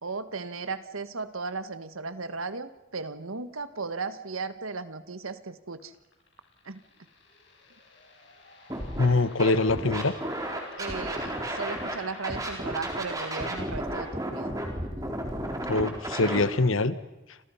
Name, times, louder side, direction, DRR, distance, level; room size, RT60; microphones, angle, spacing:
voice 1, 0.0-5.9 6.7-6.8 10.8-14.5, right 4 dB, 85° right, 12 dB, 1.5 m, -36 dB
sound 1, 5.8-13.5, left 3 dB, 55° left, 7.4 m, -49 dB
Scratching (performance technique), 8.7-9.1 9.4-11.9 12.2-16.4, right 1 dB, 15° right, 4.1 m, -33 dB
voice 2, 9.0-10.1 15.7-17.0, left 3 dB, 75° left, 13 dB, 1.4 m, -24 dB
29.0 x 27.5 x 5.8 m, 0.96 s
head